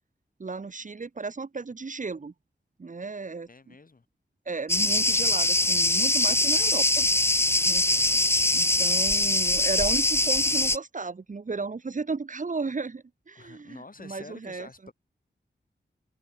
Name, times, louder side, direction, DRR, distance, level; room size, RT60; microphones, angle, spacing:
voice 1, 0.4-2.3 2.8-3.7 4.5-7.1 7.6-7.8 8.5-14.9, right 4 dB, 45° right, 1.0 m, -34 dB
voice 2, 3.5-4.0 8.4-8.9 13.4-14.9, left 3 dB, 50° left, 7.2 m, -48 dB
Cricket, 4.7-10.8, left 2 dB, 15° left, 0.6 m, -23 dB
wide cardioid pair, 85°, 19 cm